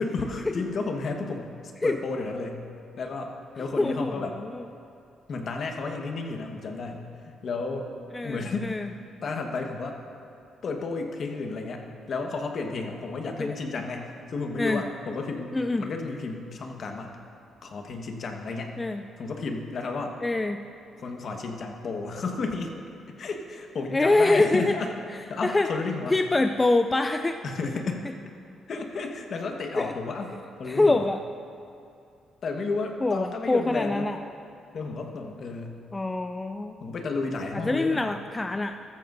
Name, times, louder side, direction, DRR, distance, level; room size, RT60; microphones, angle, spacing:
voice 1, 0.0-1.5 1.8-2.6 3.0-4.4 5.3-7.9 8.2-8.7 9.2-10.0 10.6-17.2 17.6-18.7 19.2-20.2 21.0-22.7 23.2-24.9 25.3-26.2 27.4-28.0 28.7-30.3 30.6-31.1 32.4-34.0 34.7-35.7 36.8-38.1, left 3 dB, 55° left, 3 dB, 1.3 m, -32 dB
voice 2, 3.8-4.6 8.1-8.9 13.4-13.6 14.6-14.8 15.5-15.9 18.8-19.0 20.2-20.6 23.9-24.7 25.4-25.7 26.1-27.4 29.8-29.9 30.7-31.2 33.0-34.2 35.9-36.8 37.6-38.8, left 2 dB, 20° left, 7 dB, 0.4 m, -25 dB
14.5 x 13.5 x 2.6 m, 2.6 s
cardioid pair, 90°, 0 cm